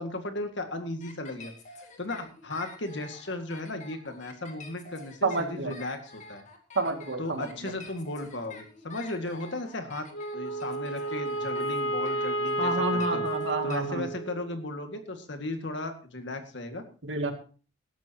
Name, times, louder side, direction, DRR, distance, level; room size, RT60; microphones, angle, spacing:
voice 1, 0.0-1.5 2.0-6.4 7.2-13.2 13.6-16.8, left 2 dB, 65° left, 6 dB, 2.0 m, -36 dB
sound 1, 1.0-13.8, left 3 dB, 40° left, 2.3 m, -48 dB
voice 2, 5.2-5.8 6.8-7.5 12.6-14.1 17.0-17.3, right 2 dB, 65° right, 5 dB, 2.3 m, -29 dB
Wind instrument woodwind instrument, 10.1-14.6, right 1 dB, 80° left, 2.4 m, -31 dB
18.0 x 12.5 x 2.9 m, 0.38 s
head